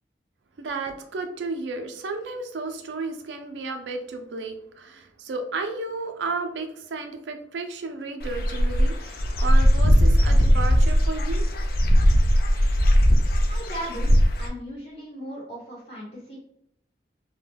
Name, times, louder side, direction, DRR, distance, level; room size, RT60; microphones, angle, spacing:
voice 1, 0.6-11.4, right 3 dB, 90° right, 6 dB, 0.4 m, -33 dB
Dog / Bird, 8.2-14.5, equal, 55° left, 0.4 m, -19 dB
voice 2, 13.5-14.1 14.4-16.4, right 1 dB, 35° left, -6 dB, 0.9 m, -37 dB
2.2 x 2.1 x 3.2 m, 0.72 s
head